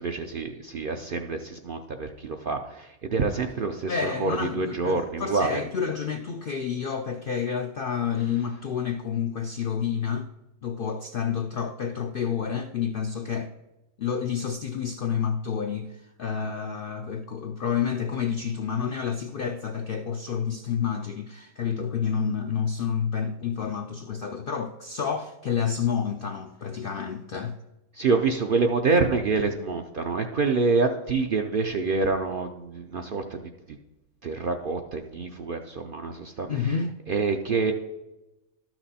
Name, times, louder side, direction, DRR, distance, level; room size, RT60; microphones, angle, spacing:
voice 1, 0.0-5.6 28.0-33.4 34.2-36.5 37.1-37.7, right 4 dB, 60° right, 0.6 m, -26 dB
voice 2, 3.9-10.3 10.6-13.5 14.0-27.6 36.5-36.9, left 7 dB, 65° left, 0.5 m, -29 dB
12.5 x 5.9 x 4.2 m
omnidirectional pair, 1.5 m